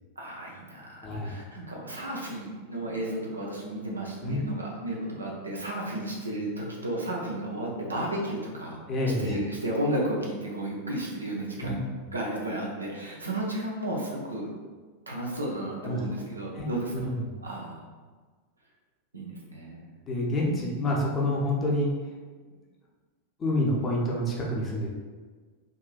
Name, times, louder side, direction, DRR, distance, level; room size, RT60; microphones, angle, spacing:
voice 1, 0.2-8.8 9.2-14.5 15.1-17.1 17.4-17.8 19.1-19.9, right 1 dB, 75° right, -2 dB, 0.6 m, -33 dB
voice 2, 1.0-1.3 4.2-4.4 8.9-9.3 11.6-11.7 15.8-16.0 16.5-16.7 16.9-17.2 20.1-21.9 22.4-22.5 23.4-24.9, left 1 dB, 25° left, -3 dB, 0.7 m, -28 dB
3.7 x 2.6 x 2.4 m, 1.4 s
figure-of-eight pair, 90°, 0 cm